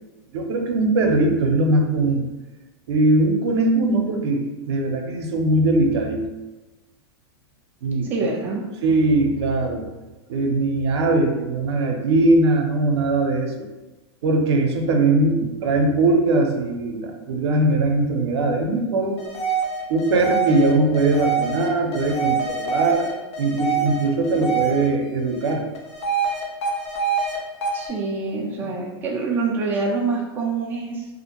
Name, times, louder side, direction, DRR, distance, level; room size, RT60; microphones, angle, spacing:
voice 1, 0.3-2.2 2.9-6.2 7.8-8.1 8.8-9.9 10.3-13.5 14.2-19.2 19.9-23.1 23.4-25.6, right 2 dB, 75° right, 2 dB, 0.5 m, -20 dB
voice 2, 8.1-8.7 15.4-15.5 27.7-31.1, right 4 dB, 15° right, -2 dB, 0.3 m, -26 dB
sound 1, 19.2-24.9 25.3-27.4 27.6-27.9, right 5 dB, 80° left, 0.7 m, -25 dB
2.5 x 2.1 x 2.9 m, 1.1 s
supercardioid pair, 140°, 14 cm